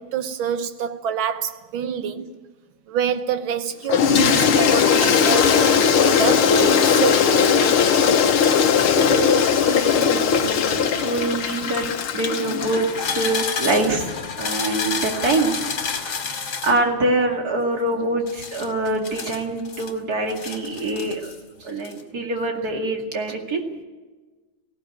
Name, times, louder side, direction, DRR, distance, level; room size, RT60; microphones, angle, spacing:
voice 1, 0.0-2.3 2.9-7.5, right 8 dB, 70° right, 1.9 m, -27 dB
Toilet flush, 3.9-13.2, left 7 dB, 90° left, 2.0 m, -18 dB
voice 2, 4.1-4.5 8.9-14.1 14.4-15.6 16.6-21.3 21.6-23.6, right 2 dB, 45° right, 2.8 m, -25 dB
sound 1, 9.6-11.6 12.4-16.8 18.3-19.9 20.3-21.4 21.7-22.0, left 6 dB, 65° left, 2.8 m, -30 dB
18.0 x 17.0 x 9.1 m
omnidirectional pair, 2.3 m